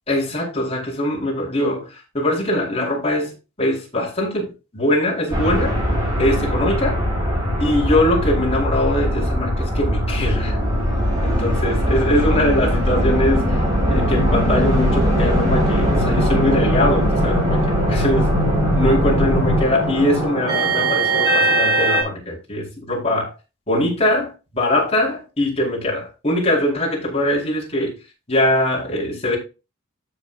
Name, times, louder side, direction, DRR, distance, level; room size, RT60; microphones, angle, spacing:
voice 1, 0.1-3.3 3.6-5.8 6.2-7.0 7.6-10.6 11.2-18.3 18.7-23.3 23.7-28.0 28.3-29.4, left 1 dB, 30° left, 4.8 m, -22 dB
sound 1, 5.3-22.0, equal, 20° right, 4.8 m, -20 dB
12.5 x 7.0 x 2.7 m
head